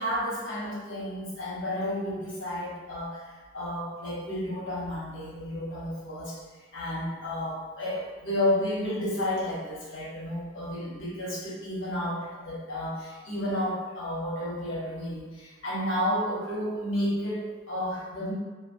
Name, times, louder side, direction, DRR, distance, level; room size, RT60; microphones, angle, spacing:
voice 1, 0.0-6.4 6.7-18.3, left 1 dB, 60° left, -6 dB, 0.8 m, -31 dB
3.0 x 2.3 x 2.5 m, 1.3 s
head